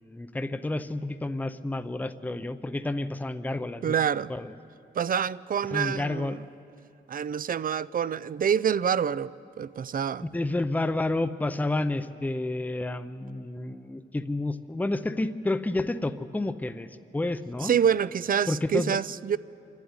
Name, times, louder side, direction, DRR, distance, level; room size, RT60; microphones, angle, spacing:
voice 1, 0.0-3.9 4.3-4.5 5.7-6.4 10.2-17.8 18.5-19.0, left 2 dB, 10° left, 0.6 m, -30 dB
voice 2, 3.8-4.3 5.0-6.4 7.1-10.3 17.6-19.4, right 8 dB, 45° right, 0.4 m, -27 dB
28.5 x 12.0 x 9.6 m
wide cardioid pair, 145°, 20 cm